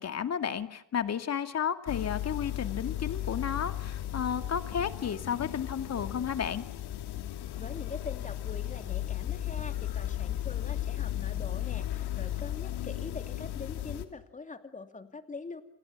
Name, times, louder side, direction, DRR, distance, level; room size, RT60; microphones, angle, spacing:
voice 1, 0.0-6.6, left 8 dB, 40° left, 9 dB, 2.4 m, -32 dB
sound 1, 1.9-14.1, left 12 dB, 75° left, 3.1 m, -35 dB
voice 2, 7.5-15.6, left 4 dB, 20° left, 8 dB, 2.7 m, -43 dB
29.5 x 28.0 x 7.3 m, 0.77 s
cardioid pair, 150°, 39 cm